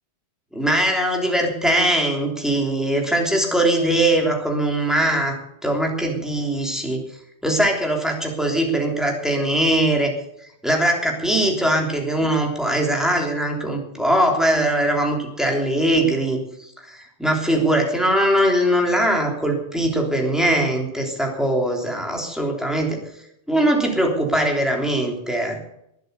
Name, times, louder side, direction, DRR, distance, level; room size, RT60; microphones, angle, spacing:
voice 1, 0.5-5.4 5.6-7.0 7.4-10.1 10.6-23.0 23.5-25.6, right 1 dB, ahead, 0 dB, 3.4 m, -21 dB
21.0 x 8.3 x 6.8 m, 0.77 s
omnidirectional pair, 1.1 m